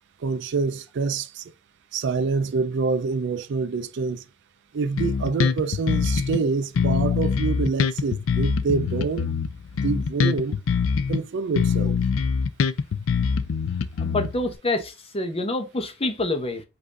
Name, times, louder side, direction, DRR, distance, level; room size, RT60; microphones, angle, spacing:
voice 1, 0.2-1.5 1.9-4.2 4.7-9.4 9.8-10.6 11.1-12.0, right 4 dB, 60° right, 0.4 m, -26 dB
Bass guitar, 5.0-6.4 6.7-11.2 11.5-14.6, left 6 dB, 75° left, 0.4 m, -24 dB
voice 2, 14.0-16.6, left 2 dB, 30° left, 0.8 m, -27 dB
5.2 x 2.6 x 3.8 m
head